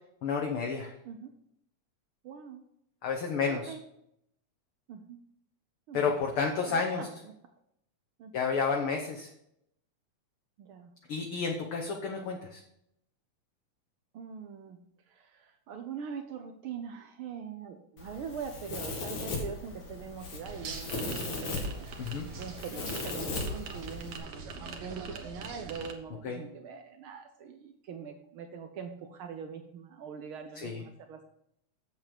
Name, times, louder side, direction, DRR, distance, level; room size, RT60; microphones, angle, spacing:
voice 1, 0.2-0.9 3.0-3.7 5.9-7.1 8.3-9.3 11.1-12.6 22.0-22.3 26.2-26.4 30.5-30.8, left 5 dB, 60° left, 1 dB, 1.6 m, -31 dB
voice 2, 2.2-2.6 3.5-3.8 4.9-5.2 5.9-6.1 6.6-7.3 8.2-8.3 10.6-10.9 14.1-14.8 15.1-21.9 22.3-31.3, right 6 dB, 85° right, 6 dB, 1.1 m, -43 dB
Domestic sounds home sounds, 18.0-24.2, left 3 dB, 80° left, 3.3 m, -37 dB
sound 1, 20.5-25.9, right 4 dB, 55° right, 1.8 m, -43 dB
8.1 x 7.7 x 5.1 m, 0.75 s
omnidirectional pair, 3.4 m